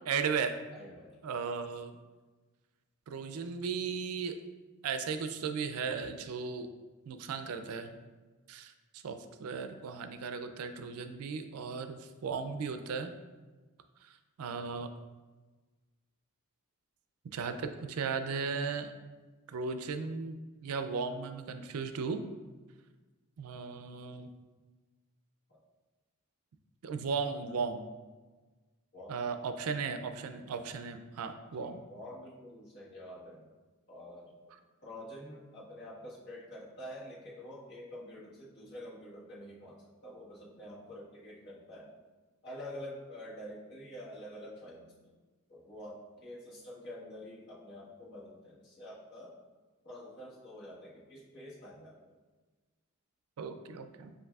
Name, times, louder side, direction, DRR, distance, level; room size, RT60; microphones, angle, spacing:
voice 1, 0.1-0.6 1.2-2.0 3.1-4.4 4.8-6.7 7.1-7.9 8.5-13.1 14.0-14.9 17.3-18.9 19.5-22.2 23.4-24.3 26.8-27.8 29.1-31.8 53.4-54.1, right 5 dB, 80° right, 8 dB, 0.4 m, -36 dB
voice 2, 0.7-1.2 25.5-25.6 28.9-29.2 31.6-33.5 33.9-34.5 34.8-42.0 42.4-45.1 45.5-49.4 49.8-52.2, left 1 dB, 50° left, -7 dB, 1.4 m, -47 dB
7.7 x 2.6 x 2.3 m, 1.3 s
head